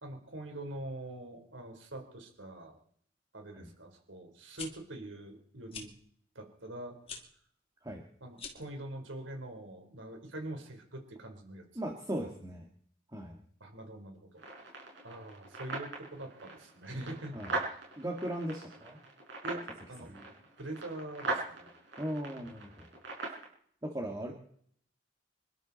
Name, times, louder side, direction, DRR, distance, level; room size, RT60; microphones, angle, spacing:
voice 1, 0.0-2.8 3.3-5.9 6.3-7.0 8.2-11.9 13.6-14.4 15.0-17.8 19.4-19.6 19.9-20.1 20.6-21.7, right 1 dB, 85° right, 4 dB, 4.0 m, -44 dB
sound 1, 4.4-4.7 5.7-5.9 7.0-7.2 8.3-8.7, left 5 dB, 30° left, 2.7 m, -43 dB
voice 2, 11.8-12.7 13.1-13.4 17.3-17.5 18.0-19.0 20.0-20.3 22.0-22.9 23.8-24.3, right 1 dB, 20° right, 1 dB, 2.0 m, -38 dB
sound 2, 14.4-23.4, right 3 dB, 70° right, 6.5 m, -41 dB
26.5 x 12.5 x 4.2 m, 0.62 s
head